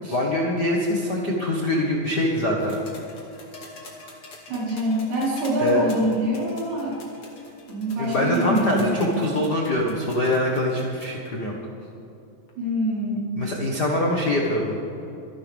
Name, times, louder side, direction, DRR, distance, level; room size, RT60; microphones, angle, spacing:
voice 1, 0.1-2.8 5.6-5.8 8.0-11.5 13.4-14.8, left 1 dB, 60° left, -1 dB, 1.0 m, -24 dB
sound 1, 2.6-11.3 12.5-12.6, left 3 dB, 45° left, 2.9 m, -45 dB
voice 2, 4.5-7.0 7.7-9.2 12.6-13.2, equal, 60° right, -6 dB, 6.0 m, -25 dB
27.0 x 11.5 x 3.6 m, 2.8 s
omnidirectional pair, 4.3 m